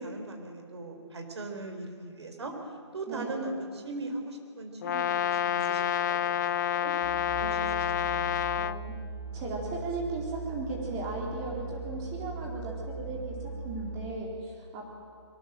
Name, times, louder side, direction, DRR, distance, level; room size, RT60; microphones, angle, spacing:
voice 1, 0.0-2.5 2.9-6.9 7.4-8.2, right 2 dB, 70° right, 4 dB, 4.4 m, -39 dB
Brass instrument, 4.8-8.8, left 10 dB, 40° left, 0.6 m, -28 dB
sound 1, 7.0-14.1, right 3 dB, 5° left, 7.8 m, -39 dB
voice 2, 7.4-7.8 8.6-8.9 9.3-13.3 13.6-14.9, right 3 dB, 25° right, -2 dB, 4.2 m, -36 dB
22.5 x 20.0 x 7.8 m, 2.5 s
figure-of-eight pair, 140°, 15 cm